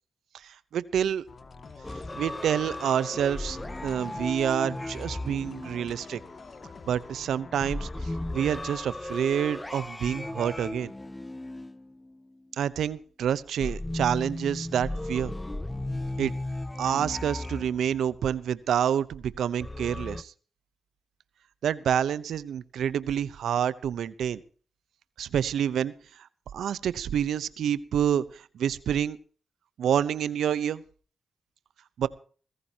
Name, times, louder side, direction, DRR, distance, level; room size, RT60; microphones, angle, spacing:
voice 1, 0.3-1.2 2.2-6.2 6.9-10.9 12.6-15.3 16.2-16.3 16.8-20.3 21.6-24.4 25.2-26.3 26.5-29.2 29.8-30.8 32.0-32.1, right 9 dB, 80° right, 17 dB, 0.8 m, -28 dB
sound 1, 1.3-8.5, left 4 dB, 50° left, 2.2 m, -47 dB
sound 2, 1.8-6.5 7.6-12.4 13.6-18.2 19.6-20.2, left 1 dB, 20° left, 0.8 m, -36 dB
22.0 x 15.0 x 2.9 m, 0.41 s
supercardioid pair, 45°, 0 cm